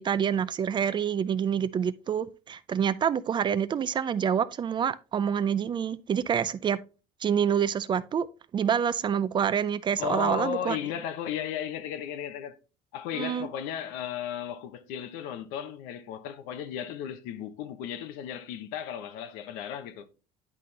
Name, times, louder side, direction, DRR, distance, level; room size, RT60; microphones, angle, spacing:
voice 1, 0.0-6.8 7.2-8.3 8.5-10.8 13.1-13.5, right 8 dB, 30° right, 0.4 m, -27 dB
voice 2, 10.0-12.6 12.9-20.1, left 9 dB, 85° left, 0.8 m, -35 dB
9.9 x 4.2 x 3.2 m
cardioid pair, 115°, 15 cm